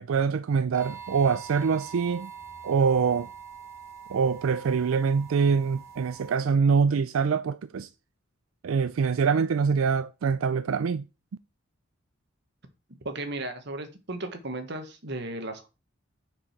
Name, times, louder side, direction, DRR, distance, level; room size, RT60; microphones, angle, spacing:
voice 1, 0.0-2.3 2.6-3.3 4.1-7.9 8.6-11.0, right 5 dB, 90° right, 0.4 m, -24 dB
sound 1, 0.7-6.4, right 7 dB, 15° right, 2.0 m, -44 dB
voice 2, 13.0-15.7, right 2 dB, 60° right, 1.4 m, -35 dB
6.2 x 4.8 x 5.8 m
head